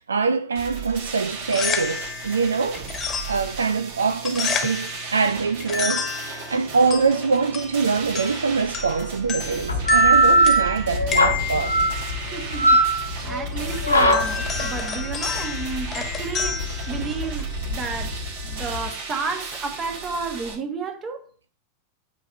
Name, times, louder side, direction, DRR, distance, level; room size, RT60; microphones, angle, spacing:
voice 1, 0.0-2.9 3.3-11.8, right 4 dB, 75° right, 0.4 m, -24 dB
sound 1, 0.5-20.5, right 5 dB, 55° right, 2.0 m, -36 dB
sound 2, 1.3-17.6, left 6 dB, 25° left, 1.4 m, -31 dB
sound 3, 9.7-18.9, right 1 dB, 80° left, 1.5 m, -21 dB
voice 2, 12.2-18.2 18.4-21.3, right 5 dB, 25° right, 1.5 m, -32 dB
9.2 x 3.3 x 5.4 m
figure-of-eight pair, 90°, 0 cm